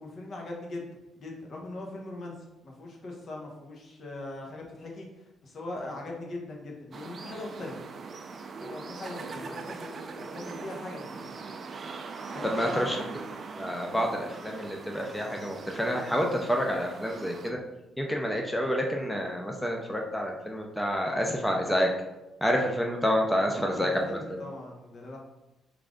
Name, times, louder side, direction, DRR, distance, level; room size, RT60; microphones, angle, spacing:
voice 1, 0.0-7.8 8.6-11.3 12.3-13.0 23.4-25.2, left 2 dB, 55° left, 0 dB, 0.9 m, -40 dB
sound 1, 6.9-17.5, right 4 dB, 50° right, 0.3 m, -41 dB
voice 2, 12.4-13.0 13.6-17.6 18.0-21.9 22.4-24.2, equal, 5° left, 0 dB, 0.5 m, -28 dB
3.2 x 2.5 x 3.7 m, 1.0 s
supercardioid pair, 75°, 0 cm